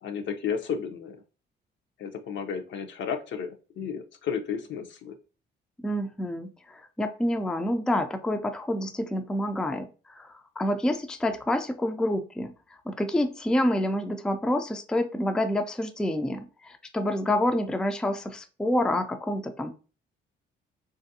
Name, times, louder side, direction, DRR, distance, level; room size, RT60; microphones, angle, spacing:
voice 1, 0.0-1.2 2.0-5.1, left 7 dB, 65° left, 6 dB, 0.6 m, -33 dB
voice 2, 5.8-12.5 12.9-19.7, left 1 dB, 5° left, 7 dB, 0.3 m, -28 dB
3.3 x 2.4 x 2.6 m, 0.35 s
cardioid pair, 90°, 20 cm